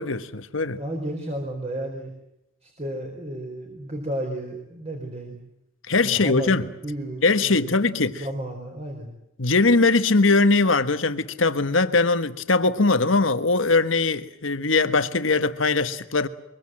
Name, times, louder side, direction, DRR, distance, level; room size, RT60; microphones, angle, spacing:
voice 1, 0.0-0.8 5.9-6.6 7.2-8.2 9.4-16.3, left 3 dB, 80° left, 1.4 m, -21 dB
voice 2, 0.8-2.1 2.6-5.4 6.0-9.1, right 1 dB, 35° right, 4.4 m, -33 dB
24.0 x 23.5 x 7.7 m
head